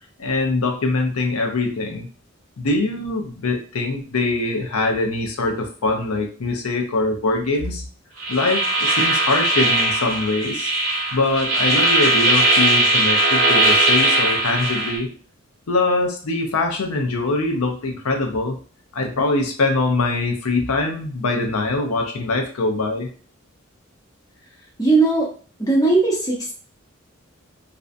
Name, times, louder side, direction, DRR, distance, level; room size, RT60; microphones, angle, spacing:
voice 1, 0.2-2.1 2.6-7.8 8.3-10.7 11.1-15.1 15.7-18.6 18.9-23.1, left 2 dB, 90° left, 3 dB, 0.6 m, -23 dB
sound 1, 8.2-15.0, right 2 dB, 40° right, 0.8 m, -19 dB
voice 2, 24.8-25.3 25.6-26.5, right 3 dB, 15° left, -4 dB, 0.7 m, -18 dB
2.5 x 2.2 x 2.5 m, 0.40 s
head